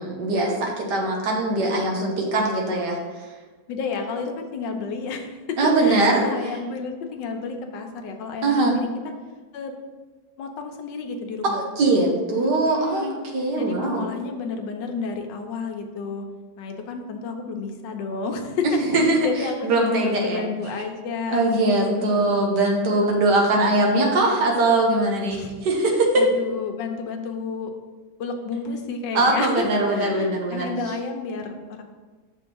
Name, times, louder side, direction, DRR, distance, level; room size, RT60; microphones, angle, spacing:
voice 1, 0.0-3.0 5.6-6.3 8.4-8.7 11.4-14.0 18.9-20.4 21.3-26.2 29.1-30.7, right 2 dB, 70° right, 0 dB, 1.7 m, -21 dB
voice 2, 3.7-8.9 9.5-9.8 10.4-11.6 12.4-13.2 13.6-16.2 16.6-22.3 25.3-25.5 25.9-27.7 28.2-29.6 29.9-31.8, left 4 dB, 90° left, 4 dB, 1.5 m, -31 dB
6.4 x 3.6 x 6.2 m, 1.3 s
omnidirectional pair, 1.9 m